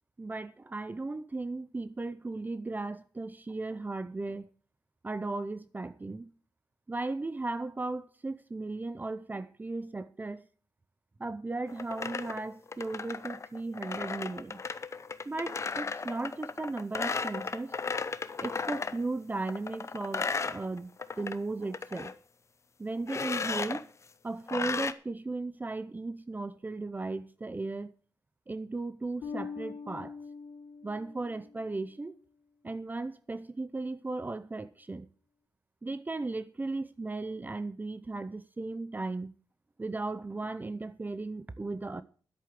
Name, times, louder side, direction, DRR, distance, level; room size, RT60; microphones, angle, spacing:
voice 1, 0.2-4.5 5.0-6.3 6.9-10.5 11.2-14.6 15.3-17.8 18.4-22.1 22.8-23.8 24.2-27.9 28.5-30.2 30.8-32.1 32.6-35.1 35.8-39.3 39.8-42.0, right 3 dB, 25° right, 0.6 m, -36 dB
sound 1, 11.7-19.0 19.5-21.4 21.6-22.1 23.1-23.8 24.5-24.9, left 4 dB, 40° left, 0.7 m, -35 dB
Bass guitar, 29.2-31.9, left 5 dB, 85° left, 1.1 m, -43 dB
10.5 x 8.3 x 7.6 m
wide cardioid pair, 105°, 7 cm